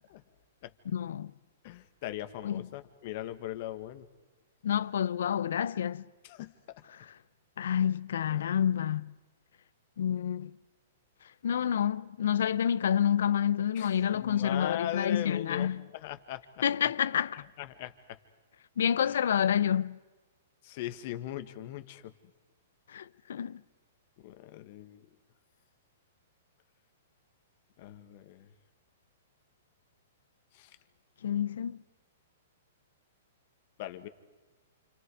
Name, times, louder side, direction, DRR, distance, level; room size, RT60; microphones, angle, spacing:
voice 1, 0.9-1.3 2.4-2.6 4.6-6.0 7.6-9.1 10.0-10.6 11.4-15.8 16.6-17.4 18.8-20.0 22.9-23.6 31.2-31.8, left 9 dB, 75° left, 0.7 m, -28 dB
voice 2, 1.6-4.1 6.2-6.5 8.3-8.5 13.7-16.6 17.1-18.2 19.0-19.2 20.6-22.1 24.2-25.1 27.8-28.5 30.5-30.8 33.8-34.1, left 12 dB, 50° left, 1.7 m, -40 dB
29.0 x 26.0 x 4.9 m
hypercardioid pair, 145°, 0 cm